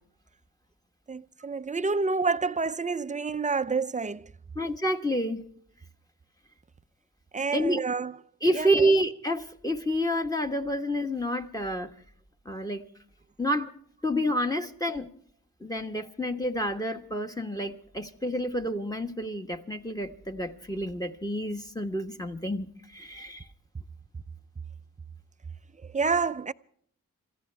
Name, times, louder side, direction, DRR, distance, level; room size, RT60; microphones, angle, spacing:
voice 1, 1.1-4.3 7.3-8.2 8.5-8.9 25.9-26.5, right 4 dB, 20° right, 0.6 m, -28 dB
voice 2, 4.5-5.4 7.5-7.8 8.4-11.9 12.4-12.8 13.4-13.7 14.0-15.1 15.6-22.7 22.9-23.4, equal, 10° left, 1.4 m, -28 dB
27.0 x 15.0 x 3.4 m
cardioid pair, 60°, 34 cm